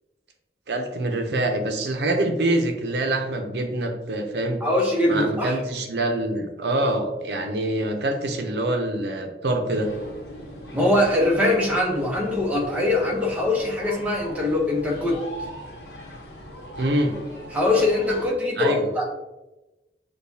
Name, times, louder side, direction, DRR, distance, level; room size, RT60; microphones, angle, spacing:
voice 1, 0.7-4.6 5.1-9.9 16.8-17.1 18.6-18.9, right 1 dB, 75° right, 4 dB, 0.6 m, -25 dB
voice 2, 4.6-5.5 10.7-15.2 17.5-19.0, left 1 dB, 10° right, -2 dB, 0.8 m, -22 dB
sound 1, 9.7-18.3, equal, 75° left, 1.0 m, -40 dB
6.5 x 2.3 x 2.7 m, 1.0 s
head